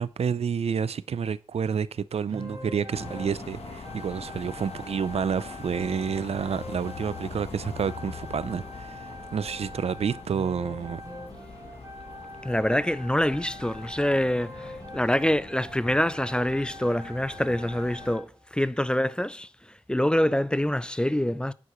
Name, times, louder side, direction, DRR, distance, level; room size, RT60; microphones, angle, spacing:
voice 1, 0.0-11.0, right 7 dB, 75° right, 0.4 m, -29 dB
sound 1, 2.3-18.3, equal, 35° right, 3.3 m, -43 dB
sound 2, 2.9-18.2, left 5 dB, 75° left, 1.0 m, -43 dB
voice 2, 12.4-21.5, left 1 dB, 10° left, 0.4 m, -26 dB
9.8 x 9.5 x 3.0 m
wide cardioid pair, 90°, 11 cm